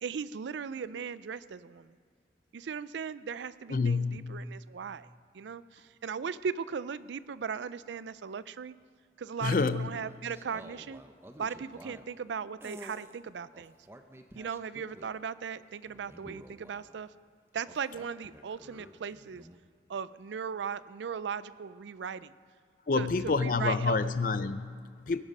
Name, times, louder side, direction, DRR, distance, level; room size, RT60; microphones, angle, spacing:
voice 1, 0.0-2.0 2.5-5.1 5.3-8.8 9.2-11.0 11.4-13.7 14.3-17.1 17.5-19.5 19.9-22.3 23.0-24.0, right 6 dB, 85° right, 0.4 m, -38 dB
voice 2, 3.7-4.2 9.4-9.9 22.9-25.2, left 4 dB, 50° left, 0.5 m, -28 dB
sound 1, 9.9-12.2 12.6-13.2 13.5-15.2 15.8-17.1 17.6-19.6, right 1 dB, 15° right, 0.6 m, -51 dB
17.5 x 8.9 x 5.4 m
head